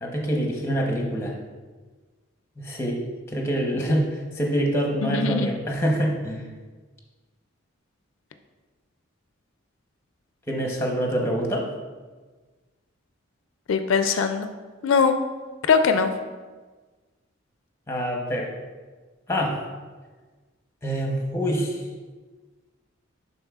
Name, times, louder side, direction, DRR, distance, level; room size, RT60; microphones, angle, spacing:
voice 1, 0.0-1.3 2.6-3.0 3.3-6.4 10.5-11.7 17.9-18.5 19.3-19.6 20.8-21.8, equal, 10° left, 0 dB, 0.8 m, -25 dB
voice 2, 5.0-5.5 13.7-14.5 14.8-15.2 15.7-16.1, left 5 dB, 70° left, 8 dB, 0.4 m, -21 dB
10.5 x 4.0 x 2.3 m, 1.4 s
head